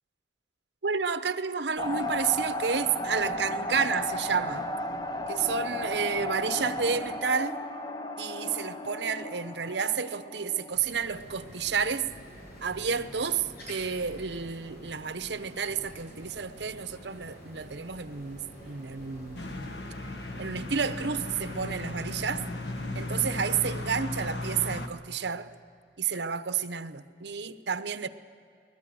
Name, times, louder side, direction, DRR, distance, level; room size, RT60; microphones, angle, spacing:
voice 1, 0.8-4.7 5.3-7.6 8.2-12.1 12.6-19.7 20.4-22.5 22.9-25.5 26.0-28.1, right 6 dB, 75° right, 0.8 m, -30 dB
sound 1, 1.8-10.7, left 1 dB, 25° left, 0.8 m, -34 dB
sound 2, 10.7-23.8, equal, 60° left, 7.6 m, -48 dB
sound 3, 19.4-24.9, left 2 dB, 80° left, 1.5 m, -36 dB
21.5 x 20.5 x 7.8 m
head